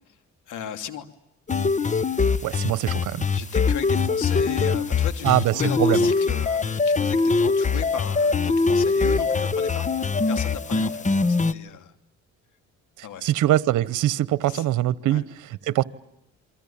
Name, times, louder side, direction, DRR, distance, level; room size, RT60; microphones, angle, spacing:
voice 1, 0.5-1.1 3.3-11.9 13.0-13.3 14.5-14.7 15.1-15.2, left 9 dB, 80° left, 3.0 m, -36 dB
sound 1, 1.5-11.5, left 4 dB, 25° left, 1.1 m, -22 dB
voice 2, 2.4-3.3 5.2-6.1 13.0-15.8, right 14 dB, 85° right, 1.0 m, -23 dB
28.0 x 23.5 x 8.8 m
cardioid pair, 90°, 30 cm